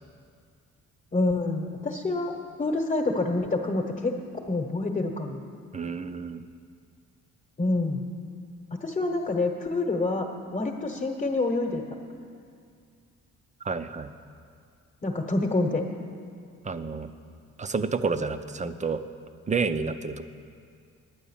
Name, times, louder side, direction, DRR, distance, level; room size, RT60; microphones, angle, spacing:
voice 1, 1.1-4.1 4.5-5.4 7.6-8.0 8.7-11.8 15.0-15.9, left 2 dB, 25° left, 0 dB, 1.1 m, -27 dB
voice 2, 5.7-6.4 13.6-14.1 16.6-17.1 17.6-19.0 19.5-20.2, right 4 dB, 25° right, 10 dB, 0.5 m, -29 dB
9.9 x 9.1 x 7.2 m, 2.3 s
cardioid pair, 90°, 30 cm